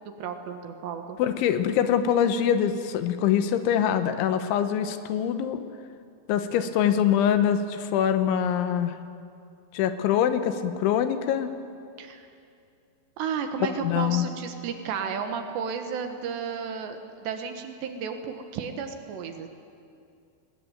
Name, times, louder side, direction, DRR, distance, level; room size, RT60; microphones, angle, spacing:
voice 1, 0.2-1.2 12.0-12.3 13.2-19.5, right 6 dB, 70° right, 6 dB, 3.3 m, -33 dB
voice 2, 1.2-5.6 6.3-8.9 9.7-11.5 13.6-14.2, left 9 dB, 80° left, 9 dB, 3.3 m, -24 dB
20.5 x 20.0 x 9.2 m, 2.5 s
omnidirectional pair, 5.6 m